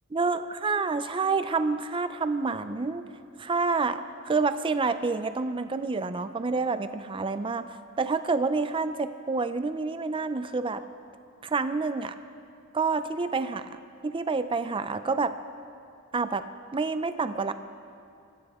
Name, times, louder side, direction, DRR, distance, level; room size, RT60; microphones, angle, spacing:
voice 1, 0.1-3.1 3.4-10.8 11.4-12.1 12.7-15.4 16.1-16.4 16.7-17.5, right 4 dB, 25° right, 11 dB, 0.4 m, -28 dB
22.5 x 16.5 x 3.6 m, 2.5 s
head